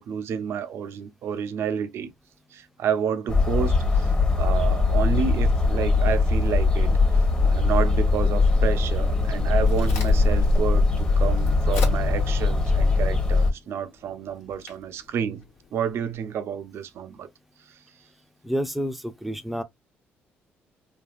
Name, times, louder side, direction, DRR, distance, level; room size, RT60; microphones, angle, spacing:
voice 1, 0.0-2.1 2.5-15.4 15.7-17.3, right 8 dB, 70° right, 0.5 m, -30 dB
sound 1, 3.3-13.5, left 3 dB, 20° left, 0.9 m, -21 dB
Crack, 9.2-16.2, left 5 dB, 85° left, 1.2 m, -43 dB
voice 2, 18.4-19.6, equal, ahead, 0.5 m, -29 dB
3.2 x 2.3 x 2.3 m
cardioid pair, 85°, 4 cm